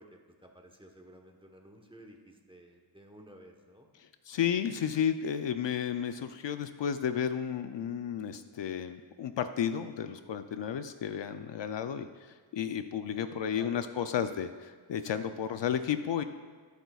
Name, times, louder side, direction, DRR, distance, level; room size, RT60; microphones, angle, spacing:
voice 1, 0.0-3.9 10.6-10.8 13.3-14.1, right 1 dB, 10° right, 2 dB, 1.1 m, -54 dB
voice 2, 4.0-16.2, left 8 dB, 60° left, 9 dB, 0.5 m, -33 dB
21.0 x 8.1 x 2.4 m, 1.5 s
wide cardioid pair, 120°, 49 cm